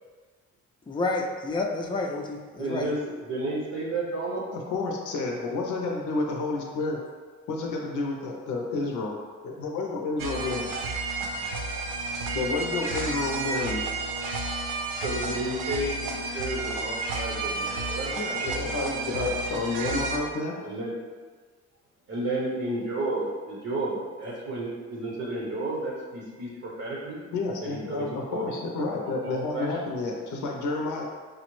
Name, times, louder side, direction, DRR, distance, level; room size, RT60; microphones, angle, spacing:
voice 1, 0.9-2.9, left 3 dB, 15° left, 1 dB, 0.4 m, -29 dB
voice 2, 2.6-3.0 3.2-4.5 15.0-18.2 20.6-21.0 22.1-27.2 27.6-29.8, right 2 dB, 55° right, -4 dB, 0.7 m, -32 dB
voice 3, 4.5-7.0 7.5-9.2 9.4-10.7 12.3-13.8 18.2-20.7 27.3-31.0, left 3 dB, 80° left, 0 dB, 0.6 m, -30 dB
sound 1, 10.2-20.2, right 3 dB, 90° right, 0.5 m, -31 dB
4.8 x 2.0 x 3.0 m, 1.5 s
cardioid pair, 90°, 30 cm